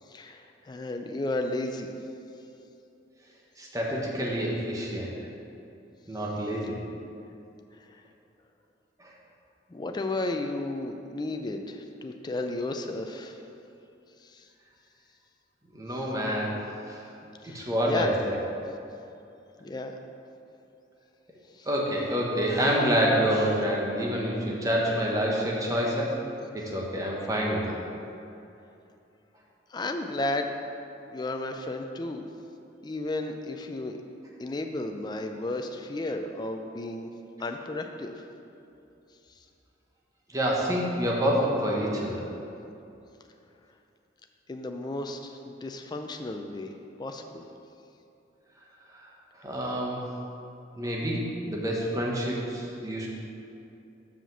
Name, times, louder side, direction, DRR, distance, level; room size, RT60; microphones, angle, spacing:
voice 1, 0.1-1.9 7.8-8.0 9.7-13.4 14.2-14.5 15.9-16.0 17.4-18.2 19.6-20.0 21.5-21.7 29.7-30.5 31.1-32.2 32.8-34.0 34.4-37.1 37.4-38.2 44.5-46.7 47.0-47.4, left 2 dB, 20° left, 5 dB, 0.4 m, -33 dB
voice 2, 3.6-5.1 6.1-6.8 9.0-9.1 15.7-16.6 16.9-17.0 17.4-18.4 21.7-26.1 26.5-27.7 40.3-42.2 49.4-50.0 50.8-53.1, equal, 20° right, -3 dB, 1.0 m, -27 dB
5.8 x 5.0 x 6.6 m, 2.7 s
head